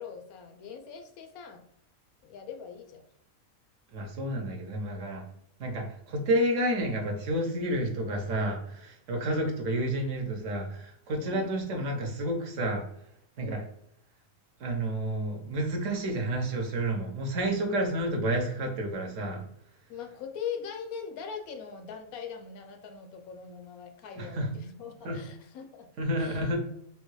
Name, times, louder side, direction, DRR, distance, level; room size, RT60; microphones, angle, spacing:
voice 1, 0.0-1.6 2.2-3.0 9.2-9.4 11.2-11.5 13.4-13.7 19.9-25.9 26.2-26.5, left 7 dB, 80° left, 5 dB, 1.1 m, -41 dB
voice 2, 3.9-5.2 5.6-12.8 13.4-13.6 14.6-19.4 24.2-24.5 25.0-25.2 26.0-26.6, right 1 dB, 65° right, 3 dB, 1.0 m, -30 dB
3.7 x 2.2 x 3.1 m, 0.73 s
omnidirectional pair, 1.5 m